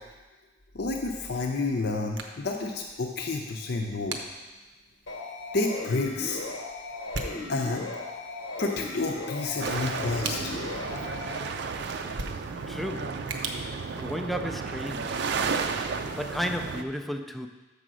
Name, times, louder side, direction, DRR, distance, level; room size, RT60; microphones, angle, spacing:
voice 1, 0.7-4.2 5.5-6.4 7.5-7.9 8.6-10.5, left 3 dB, 60° left, 1 dB, 0.7 m, -30 dB
sound 1, 1.1-14.7, right 3 dB, 90° right, 0.8 m, -43 dB
sound 2, 5.1-11.4, left 2 dB, 85° left, 1.0 m, -37 dB
sound 3, 9.6-16.8, right 5 dB, 65° right, 0.5 m, -33 dB
voice 2, 12.7-13.3 14.0-15.2 16.2-17.5, equal, ahead, 6 dB, 0.4 m, -33 dB
6.8 x 5.0 x 6.2 m, 1.2 s
head